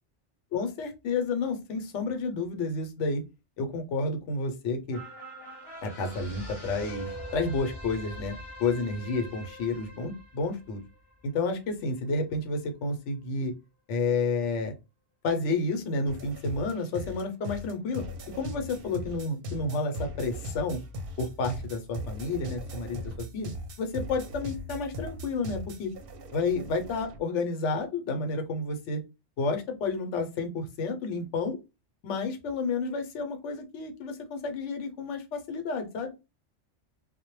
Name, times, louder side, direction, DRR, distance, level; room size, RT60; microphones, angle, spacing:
voice 1, 0.5-3.2 3.6-5.0 5.8-8.3 8.6-10.8 11.2-13.5 13.9-14.7 15.2-18.0 18.4-20.8 21.2-23.5 23.8-25.9 26.3-29.0 29.4-31.6 32.0-36.1, left 3 dB, 80° left, 6 dB, 0.9 m, -30 dB
sound 1, 4.9-11.6 12.0-12.1, equal, 25° left, 0.8 m, -43 dB
sound 2, 16.1-27.2, equal, 60° right, 0.7 m, -39 dB
2.1 x 2.0 x 3.0 m, 0.26 s
omnidirectional pair, 1.2 m